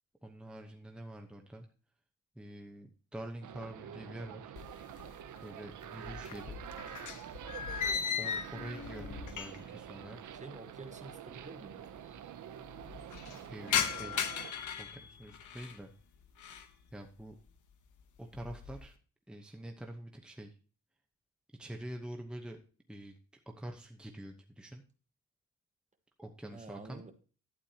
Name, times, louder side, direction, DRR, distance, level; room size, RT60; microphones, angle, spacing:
voice 1, 0.2-1.7 2.3-4.5 5.4-6.6 8.2-10.2 13.2-14.3 14.8-15.9 16.9-17.4 18.2-18.9 19.3-20.6 21.6-22.6 22.9-23.2 23.5-24.8 26.2-27.0, right 1 dB, 5° right, 3 dB, 0.9 m, -46 dB
sound 1, 3.4-14.5, right 9 dB, 85° right, 0.7 m, -47 dB
sound 2, 4.6-5.4 5.7-9.8 10.1-10.2 11.1-11.2 11.3-11.4 11.7-12.2 12.6-15.8 16.2-16.7 17.2-17.6 18.0-18.9, left 7 dB, 90° left, 1.0 m, -38 dB
voice 2, 10.3-11.8 26.5-27.1, right 3 dB, 25° right, 7 dB, 1.2 m, -49 dB
12.0 x 9.0 x 2.8 m, 0.37 s
wide cardioid pair, 130°, 30 cm